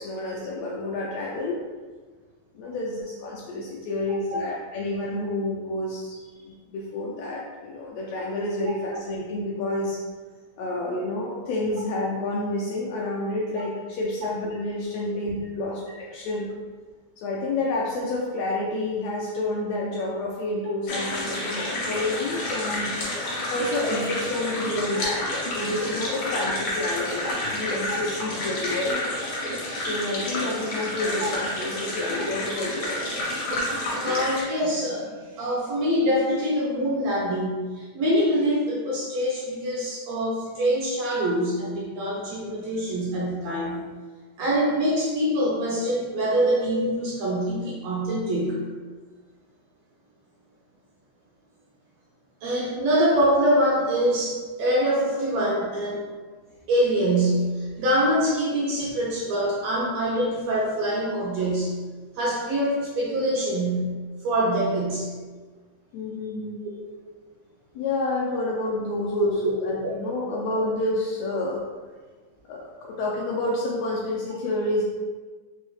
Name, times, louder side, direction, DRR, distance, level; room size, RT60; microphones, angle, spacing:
voice 1, 0.0-1.6 2.6-10.0 10.6-16.5 17.2-22.9 23.5-29.0 29.7-33.2 65.9-66.6 67.7-71.6 72.5-74.8, left 2 dB, 80° left, -4 dB, 1.5 m, -29 dB
sound 1, 20.9-34.4, left 1 dB, 65° left, 1.3 m, -29 dB
voice 2, 34.0-43.8 44.4-48.6 52.4-56.1 56.7-61.7 62.2-63.9 64.2-65.1 66.8-66.9 69.2-69.6 69.8-69.9 71.3-71.4, equal, 75° right, -4 dB, 1.6 m, -24 dB
5.3 x 2.0 x 3.0 m, 1.4 s
omnidirectional pair, 3.4 m